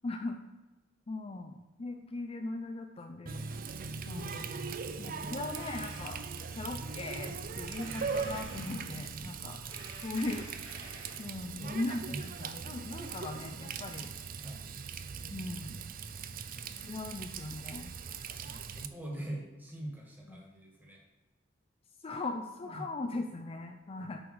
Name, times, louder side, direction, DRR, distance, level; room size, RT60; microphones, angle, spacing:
voice 1, 0.0-0.4 1.1-3.5 4.1-4.5 5.0-6.2 6.5-9.6 10.0-10.5 11.2-14.1 15.3-15.8 16.8-17.9 20.3-20.4 22.0-24.2, left 2 dB, 30° left, 5 dB, 0.5 m, -39 dB
Water tap faucet, 3.3-18.9, right 5 dB, 50° right, 0.5 m, -40 dB
sound 1, 5.5-6.1 7.7-9.2 9.7-11.3, right 1 dB, 85° right, 2.4 m, -48 dB
voice 2, 11.6-12.2 14.4-14.7 16.3-16.9 18.4-21.0 22.6-22.8 24.0-24.2, right 1 dB, 10° right, -2 dB, 1.8 m, -45 dB
8.0 x 5.5 x 4.7 m, 1.1 s
head